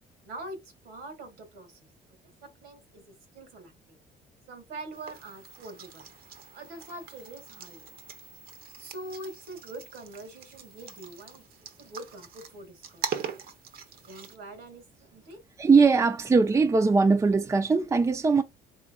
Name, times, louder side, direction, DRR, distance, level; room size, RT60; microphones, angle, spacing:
voice 1, 0.2-1.8 2.4-4.0 4.5-6.1 6.5-7.9 8.8-13.1 14.0-15.4, right 1 dB, 90° right, 1.8 m, -44 dB
sound 1, 4.9-14.4, right 7 dB, 60° right, 0.8 m, -42 dB
voice 2, 15.6-18.4, right 4 dB, 20° right, 0.4 m, -21 dB
3.7 x 3.3 x 2.3 m
cardioid pair, 110°, 17 cm